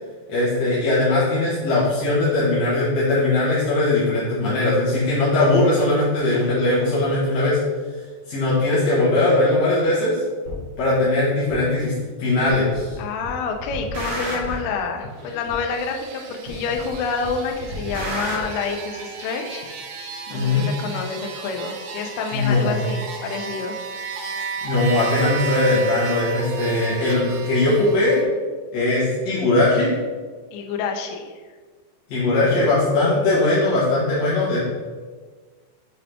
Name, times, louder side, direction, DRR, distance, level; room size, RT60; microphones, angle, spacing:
voice 1, 0.3-7.6 8.3-10.2 10.8-11.9 12.2-12.9 20.3-20.7 22.3-22.8 24.6-28.2 28.7-29.9 32.1-34.6, left 2 dB, 65° left, -10 dB, 1.7 m, -20 dB
sound 1, 10.4-10.6 11.5-11.6 12.5-12.9 13.2-14.7 15.5-15.6 16.5-16.9 17.2-18.4, equal, 60° right, 2.0 m, -30 dB
voice 2, 13.0-19.7 20.3-23.8 30.5-31.4, left 5 dB, 90° left, 3 dB, 2.2 m, -28 dB
sound 2, 15.0-28.2, right 5 dB, 85° right, 3.0 m, -34 dB
7.3 x 3.8 x 3.4 m, 1.5 s
omnidirectional pair, 5.3 m